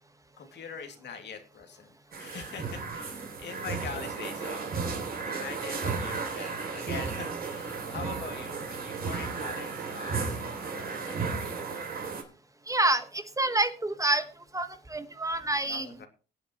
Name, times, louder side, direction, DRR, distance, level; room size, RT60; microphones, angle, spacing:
voice 1, 0.4-1.9 2.2-4.7 5.3-12.0 15.7-16.1, left 6 dB, 60° left, 5 dB, 2.5 m, -43 dB
sound 1, 2.1-12.2, right 4 dB, 50° right, 3.0 m, -34 dB
voice 2, 12.7-14.2 14.5-15.9, right 2 dB, 15° right, 9 dB, 1.2 m, -27 dB
23.5 x 8.1 x 3.1 m, 0.35 s
cardioid pair, 90°, 20 cm